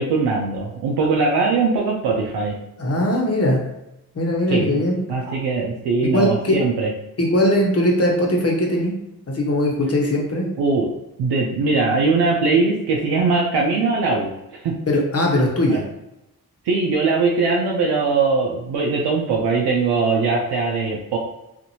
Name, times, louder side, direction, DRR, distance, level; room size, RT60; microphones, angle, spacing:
voice 1, 0.0-2.5 4.5-4.8 5.1-6.9 10.6-10.9 11.2-14.3 14.6-14.7 15.7-15.8 16.7-21.2, right 4 dB, 90° right, -1 dB, 0.5 m, -20 dB
voice 2, 2.8-3.6 4.1-5.0 6.0-6.6 7.2-8.9 9.3-10.5 14.9-15.8, left 1 dB, 40° left, 0 dB, 1.0 m, -20 dB
2.6 x 2.5 x 2.7 m, 0.89 s
supercardioid pair, 45°, 39 cm